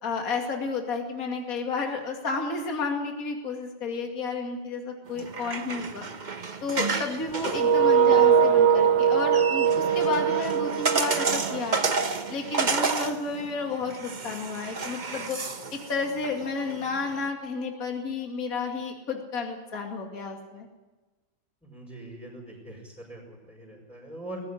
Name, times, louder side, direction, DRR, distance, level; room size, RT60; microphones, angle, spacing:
voice 1, 0.0-6.1 6.6-11.9 12.3-15.4 15.7-20.7, left 4 dB, 40° left, 2 dB, 2.8 m, -32 dB
sound 1, 5.1-17.3, right 4 dB, 35° right, 0.8 m, -31 dB
sound 2, 7.5-12.3, right 7 dB, 65° right, 1.8 m, -22 dB
voice 2, 21.6-24.4, right 1 dB, 5° left, -5 dB, 5.5 m, -42 dB
21.0 x 15.0 x 10.0 m, 1.2 s
omnidirectional pair, 2.3 m